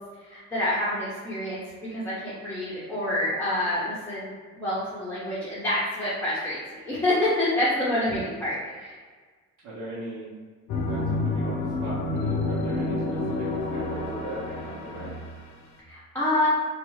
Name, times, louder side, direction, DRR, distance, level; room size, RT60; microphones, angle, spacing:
voice 1, 0.3-1.6 1.9-9.0 15.9-16.5, left 1 dB, 10° left, -11 dB, 0.6 m, -27 dB
voice 2, 9.6-10.3 10.8-13.0 13.3-15.1, right 1 dB, 80° right, -9 dB, 0.8 m, -39 dB
sound 1, 10.7-15.7, left 2 dB, 70° left, 0.5 m, -29 dB
2.5 x 2.2 x 3.0 m, 1.5 s
cardioid pair, 135°, 29 cm